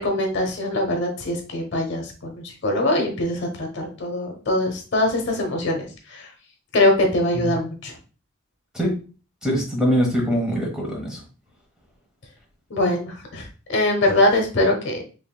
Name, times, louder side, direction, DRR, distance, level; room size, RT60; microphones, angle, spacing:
voice 1, 0.0-6.3 6.7-8.0 12.7-15.0, left 1 dB, 60° left, 2 dB, 1.0 m, -23 dB
voice 2, 9.4-11.2, equal, 5° right, -1 dB, 1.3 m, -23 dB
5.2 x 3.1 x 2.2 m, 0.34 s
head